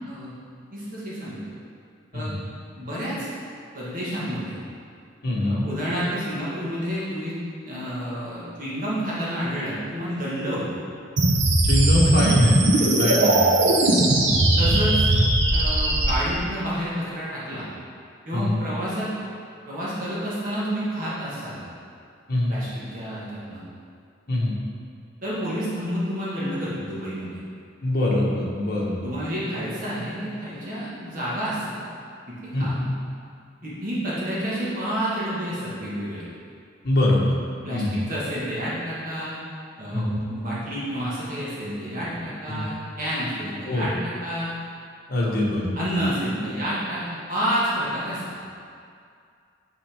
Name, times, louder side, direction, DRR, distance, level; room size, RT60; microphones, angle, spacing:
voice 1, 0.7-1.4 2.1-2.4 2.7-3.3 3.7-4.6 5.4-7.4 7.6-10.8 13.2-13.4 13.7-13.9 14.6-15.1 15.5-17.7 18.3-19.1 19.7-21.6 22.5-23.6 25.2-27.4 29.0-31.8 32.3-32.8 33.6-36.2 37.6-39.3 39.8-44.5 45.2-45.3 45.7-48.2, equal, 45° right, -9 dB, 1.4 m, -29 dB
voice 2, 5.2-5.7 11.6-13.5 13.8-13.9 14.2-14.4 14.7-14.9 18.3-18.6 22.3-22.5 24.3-24.6 27.8-29.1 32.5-32.8 36.8-37.4 37.7-38.0 39.9-40.2 42.5-42.7 43.7-43.9 45.1-45.7, left 1 dB, 55° left, -4 dB, 1.2 m, -24 dB
sound 1, 11.2-16.1, right 2 dB, 75° right, 0.8 m, -19 dB
6.5 x 5.9 x 3.5 m, 2.3 s
head